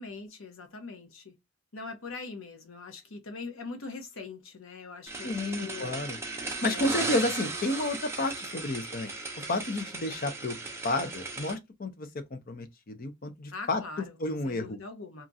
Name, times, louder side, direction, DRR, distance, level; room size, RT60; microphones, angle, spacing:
voice 1, 0.0-1.4 1.7-6.0 6.6-7.2 13.5-14.2 14.4-15.3, left 4 dB, 70° left, 0.8 m, -42 dB
sound 1, 5.1-11.5, right 3 dB, 10° right, 0.5 m, -36 dB
voice 2, 5.2-6.2 6.5-9.1 9.5-10.6 10.8-13.8 14.2-14.8, left 2 dB, 40° left, 0.5 m, -31 dB
2.8 x 2.4 x 2.6 m
head